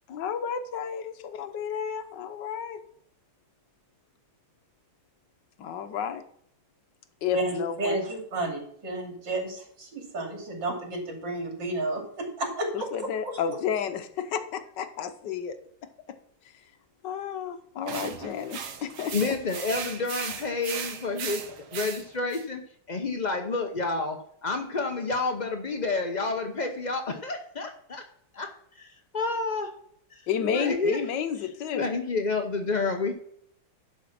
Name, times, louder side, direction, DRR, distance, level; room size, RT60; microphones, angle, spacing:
voice 1, 0.1-2.8 5.6-6.2 7.2-8.0 12.7-15.6 17.0-19.3 30.3-31.8, left 8 dB, 65° left, 9 dB, 1.4 m, -31 dB
voice 2, 7.3-12.7 13.2-13.3, right 2 dB, 60° right, 1 dB, 3.3 m, -31 dB
sound 1, 17.9-22.4, right 7 dB, 85° right, 1.9 m, -37 dB
voice 3, 19.1-22.6 22.9-24.2 24.4-28.0 28.3-28.5 28.7-29.7 30.1-30.2 30.5-31.0 31.7-33.1, left 3 dB, 85° left, 4 dB, 0.4 m, -29 dB
11.5 x 5.2 x 5.9 m, 0.66 s
omnidirectional pair, 2.2 m